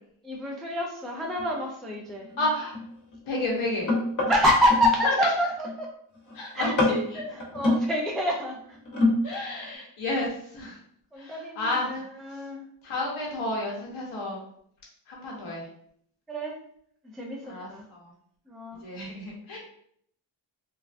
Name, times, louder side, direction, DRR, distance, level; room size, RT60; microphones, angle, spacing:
voice 1, 0.2-2.3 4.3-5.9 6.5-6.7 7.3-8.8 9.3-9.4 11.1-12.6 16.3-16.6 17.1-17.8 18.5-18.8, equal, ahead, -1 dB, 0.3 m, -27 dB
sound 1, 1.4-1.5 1.9-5.0 5.3-5.7 6.1-6.4 6.6-7.8 8.7-9.4 9.7-9.8, left 2 dB, 40° left, 1.0 m, -27 dB
voice 2, 2.4-2.7 3.2-3.9 5.0-5.3 6.3-7.4 9.2-10.8 11.2-12.0 12.3-12.4 12.8-14.4 15.1-15.7 17.4-18.1 18.8-19.6, left 2 dB, 80° left, -3 dB, 0.8 m, -31 dB
3.2 x 2.3 x 2.4 m, 0.67 s
wide cardioid pair, 90°, 48 cm